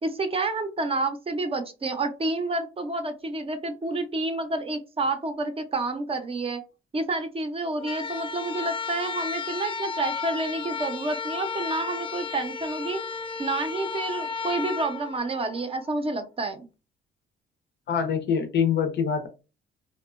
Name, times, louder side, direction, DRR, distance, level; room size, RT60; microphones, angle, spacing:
voice 1, 0.0-6.6 6.9-13.0 13.4-16.7, right 2 dB, 30° right, 7 dB, 0.5 m, -29 dB
sound 1, 7.8-15.9, left 5 dB, 25° left, 0.3 m, -34 dB
voice 2, 17.9-19.3, left 7 dB, 60° left, 7 dB, 0.6 m, -24 dB
2.7 x 2.1 x 2.4 m, 0.31 s
cardioid pair, 90°, 20 cm